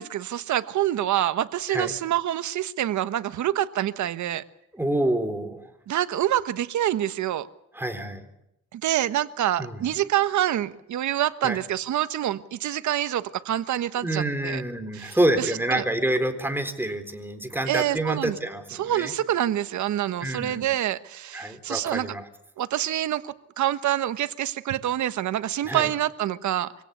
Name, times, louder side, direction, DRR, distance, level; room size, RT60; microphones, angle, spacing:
voice 1, 0.0-4.4 5.9-7.5 8.7-14.6 14.9-15.8 17.7-18.4 18.7-22.1 22.6-26.7, right 12 dB, 70° right, 12 dB, 1.3 m, -26 dB
voice 2, 4.7-5.7 7.7-8.3 9.6-9.9 11.4-11.6 14.0-19.1 20.2-20.7 21.3-22.2 25.6-25.9, right 1 dB, 5° right, 8 dB, 3.9 m, -27 dB
25.0 x 17.0 x 8.3 m, 0.81 s
cardioid pair, 90°, 30 cm